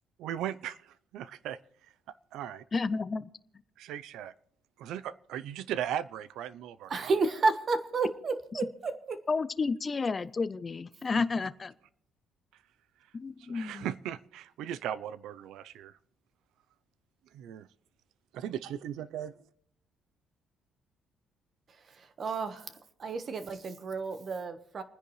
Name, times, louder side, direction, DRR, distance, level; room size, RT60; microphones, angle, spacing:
voice 1, 0.2-0.7 1.1-1.6 2.3-2.6 3.8-4.3 4.8-7.1 13.5-15.9 17.3-17.7 18.3-19.3, right 10 dB, 80° right, 16 dB, 0.5 m, -37 dB
voice 2, 2.7-3.3 8.5-8.6 9.3-11.7 13.1-13.9, left 4 dB, 25° left, 15 dB, 0.5 m, -31 dB
voice 3, 6.9-9.2 22.0-24.8, right 3 dB, 40° right, 10 dB, 1.3 m, -31 dB
29.5 x 10.0 x 3.2 m, 0.71 s
cardioid pair, 125°, 0 cm